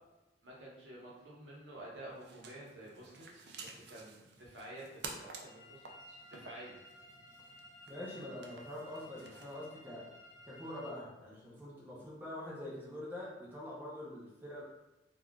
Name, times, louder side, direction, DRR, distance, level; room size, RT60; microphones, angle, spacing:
voice 1, 0.4-6.7, right 1 dB, 75° right, -4 dB, 0.9 m, -51 dB
sound 1, 2.1-9.6, right 4 dB, 60° right, 0.4 m, -52 dB
sound 2, 5.4-10.9, left 1 dB, 55° left, 0.9 m, -56 dB
voice 2, 7.9-10.1 10.5-14.6, left 1 dB, 10° right, -7 dB, 0.6 m, -45 dB
3.5 x 2.4 x 2.2 m, 1.0 s
head